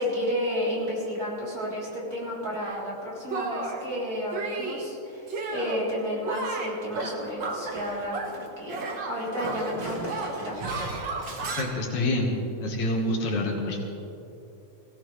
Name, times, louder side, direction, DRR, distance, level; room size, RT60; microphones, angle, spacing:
voice 1, 0.0-10.6, equal, 30° right, -6 dB, 3.7 m, -32 dB
Shatter, 2.6-2.8 3.3-3.8 4.3-4.9 5.3-5.9 6.2-8.4 8.7-11.6, right 3 dB, 50° right, 1.5 m, -33 dB
voice 2, 11.4-12.3 12.6-13.8, left 1 dB, 70° left, -1 dB, 2.8 m, -27 dB
22.5 x 16.0 x 3.3 m, 2.9 s
omnidirectional pair, 3.6 m